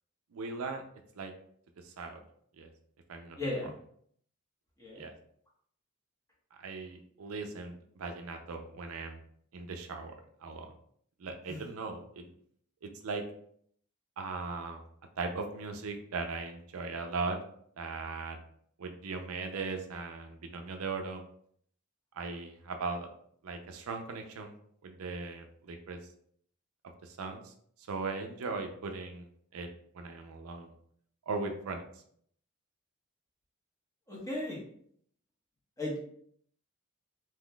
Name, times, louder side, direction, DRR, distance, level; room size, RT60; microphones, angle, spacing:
voice 1, 0.3-0.8 1.2-1.3 1.8-2.2 2.6-2.7 3.1-3.4 5.0-5.1 6.6-9.2 9.5-10.1 10.4-10.7 11.2-12.3 12.8-13.2 14.2-14.8 15.2-17.4 17.8-18.4 18.8-21.2 22.2-23.1 23.4-24.5 24.8-26.0 27.0-27.5 27.9-29.7 29.9-30.7 31.3-31.9, right 4 dB, 80° right, 5 dB, 0.5 m, -38 dB
voice 2, 3.4-3.7 4.8-5.0 11.5-11.6 34.1-34.6 35.8-36.0, left 1 dB, 15° left, -4 dB, 1.0 m, -35 dB
3.8 x 2.8 x 2.2 m, 0.64 s
head